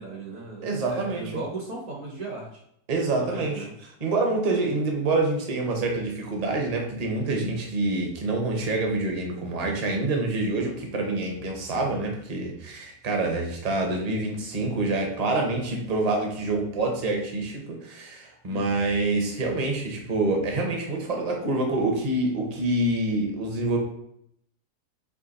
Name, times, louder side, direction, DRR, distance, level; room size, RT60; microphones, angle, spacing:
voice 1, 0.0-2.6 3.2-3.7 18.5-18.8, right 2 dB, 60° right, -2 dB, 1.2 m, -37 dB
voice 2, 0.6-1.3 2.9-3.6 4.0-23.8, right 2 dB, 35° right, 1 dB, 0.7 m, -26 dB
3.7 x 3.1 x 4.0 m, 0.73 s
omnidirectional pair, 1.6 m